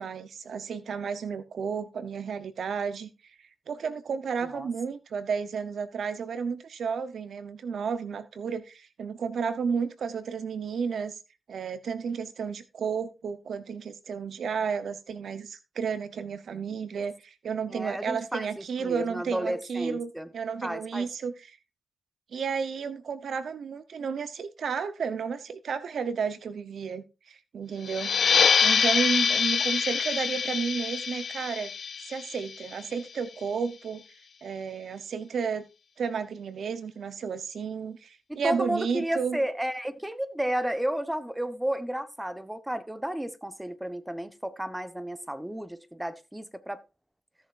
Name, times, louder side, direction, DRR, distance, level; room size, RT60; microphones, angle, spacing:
voice 1, 0.0-3.1 3.7-11.2 11.5-21.3 22.3-28.1 28.6-31.7 32.1-34.0 34.4-35.7 36.0-39.4, right 6 dB, 75° right, 0.8 m, -32 dB
voice 2, 17.7-20.3 20.6-21.1 38.3-46.8, right 1 dB, 10° right, 1.1 m, -32 dB
sound 1, 27.8-33.1, left 6 dB, 65° left, 0.5 m, -25 dB
16.0 x 7.0 x 2.5 m
cardioid pair, 55°, 0 cm